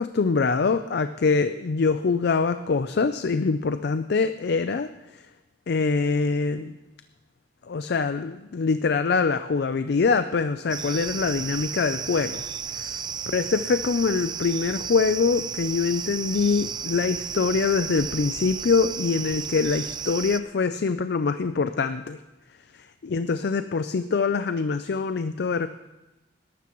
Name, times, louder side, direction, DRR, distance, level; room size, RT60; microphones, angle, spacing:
voice 1, 0.0-4.9 5.7-6.8 7.7-12.4 12.7-22.2 23.0-25.7, left 4 dB, 65° left, 11 dB, 0.4 m, -24 dB
sound 1, 10.7-20.4, right 7 dB, 25° right, 0.4 m, -33 dB
20.0 x 12.0 x 3.1 m, 1.1 s
head